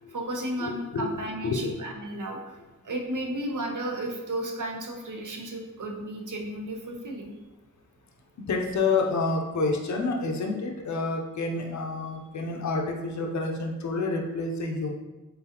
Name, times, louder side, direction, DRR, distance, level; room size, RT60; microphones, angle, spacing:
voice 1, 0.1-2.6 2.8-7.3, right 1 dB, 70° right, 1 dB, 0.7 m, -33 dB
voice 2, 0.6-1.1 1.4-1.8 8.5-14.9, left 3 dB, 65° left, 1 dB, 0.6 m, -28 dB
3.8 x 3.8 x 2.8 m, 1.1 s
wide cardioid pair, 80°, 32 cm